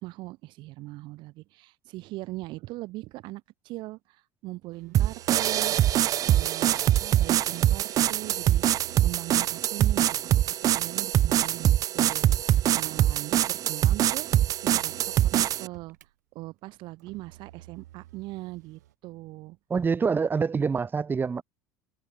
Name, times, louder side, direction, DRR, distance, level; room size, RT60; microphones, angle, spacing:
voice 1, 0.0-5.8 6.3-8.7 9.0-14.3 14.6-16.0 16.3-19.6, right 19 dB, 60° right, 3.3 m, -40 dB
Motor vehicle (road), 4.7-6.9 8.1-11.7 12.8-16.1 17.0-18.9, right 14 dB, 80° right, 2.8 m, -53 dB
sound 1, 4.9-15.7, right 12 dB, 40° right, 0.4 m, -23 dB
voice 2, 19.7-21.4, right 5 dB, 20° right, 0.8 m, -26 dB
hypercardioid pair, 75°, 9 cm